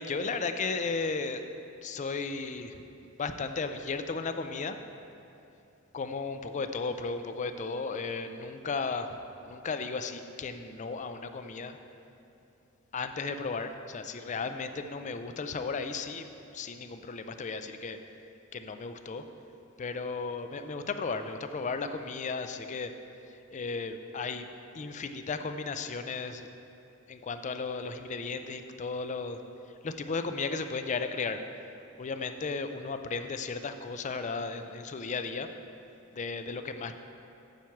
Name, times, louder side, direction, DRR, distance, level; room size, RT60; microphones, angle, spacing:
voice 1, 0.0-1.4 1.8-2.8 3.2-4.8 5.9-11.8 12.9-16.3 16.5-18.0 18.5-19.2 19.8-22.9 23.5-24.5 24.7-26.5 27.1-29.4 29.8-31.4 32.0-35.5 36.1-36.9, left 4 dB, 35° left, 8 dB, 0.4 m, -35 dB
9.2 x 4.6 x 7.2 m, 2.8 s
head